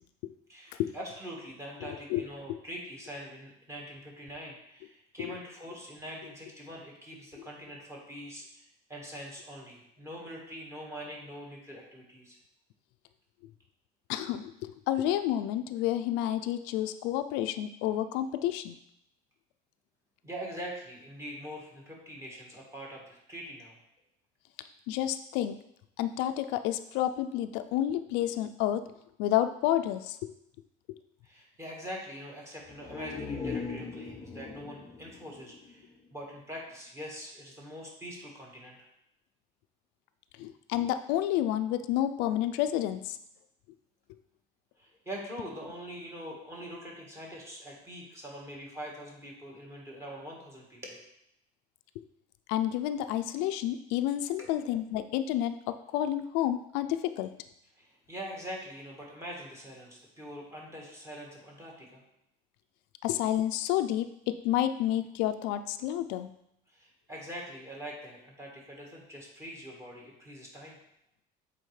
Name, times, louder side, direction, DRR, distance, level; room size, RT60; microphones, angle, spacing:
voice 1, 0.5-12.4 20.2-23.8 31.2-38.8 44.8-51.0 54.4-54.5 57.8-62.0 66.7-70.8, equal, 15° right, -2 dB, 1.5 m, -43 dB
voice 2, 14.1-18.7 24.9-25.5 26.0-28.8 29.2-30.3 40.4-43.2 52.5-57.3 63.0-66.3, left 12 dB, 70° left, 10 dB, 0.4 m, -30 dB
sound 1, 32.6-36.4 36.7-36.8, left 5 dB, 15° left, 0.5 m, -40 dB
7.7 x 4.1 x 3.2 m, 0.78 s
cardioid pair, 150°, 18 cm